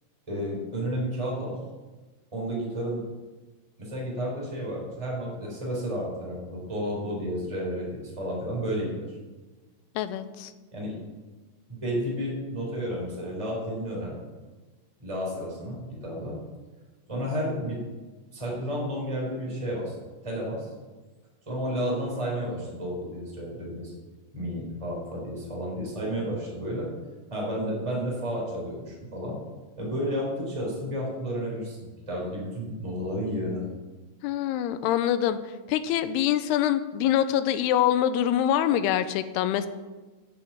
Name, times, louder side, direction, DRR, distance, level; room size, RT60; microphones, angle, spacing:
voice 1, 0.3-1.6 2.3-3.0 3.8-9.1 10.7-10.9 11.7-14.2 15.0-16.4 17.1-17.8 18.3-19.9 20.2-20.7 21.5-23.9 24.3-26.9 27.3-29.4 29.8-31.8 32.1-33.6, equal, 5° right, -4 dB, 4.4 m, -31 dB
voice 2, 10.0-10.5 34.2-39.7, left 11 dB, 80° left, 11 dB, 2.6 m, -25 dB
10.5 x 8.7 x 8.6 m, 1.3 s
omnidirectional pair, 5.0 m